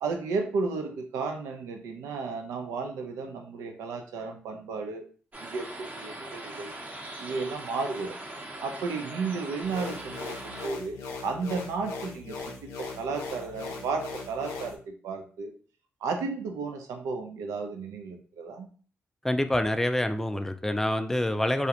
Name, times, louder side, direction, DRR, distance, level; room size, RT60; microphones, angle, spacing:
voice 1, 0.0-5.0 5.4-6.7 7.2-8.1 8.6-11.0 11.2-15.5 16.0-18.7, right 4 dB, 90° right, 5 dB, 0.4 m, -33 dB
sound 1, 5.3-10.7, right 1 dB, 30° right, 0.7 m, -41 dB
sound 2, 9.6-14.8, left 4 dB, 85° left, 0.5 m, -39 dB
voice 2, 19.2-21.7, left 1 dB, 10° left, 8 dB, 0.3 m, -26 dB
2.4 x 2.0 x 2.8 m, 0.41 s
supercardioid pair, 55°, 5 cm